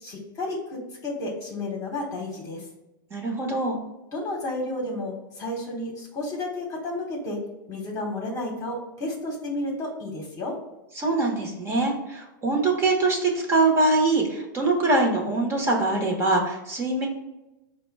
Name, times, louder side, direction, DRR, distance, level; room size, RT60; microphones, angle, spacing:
voice 1, 0.0-2.6 4.1-7.4 7.7-10.5, left 2 dB, 25° left, -1 dB, 1.1 m, -32 dB
voice 2, 3.1-3.8 10.9-17.1, right 2 dB, 20° right, 0 dB, 1.0 m, -23 dB
4.8 x 2.2 x 4.6 m, 0.99 s
hypercardioid pair, 125°, 12 cm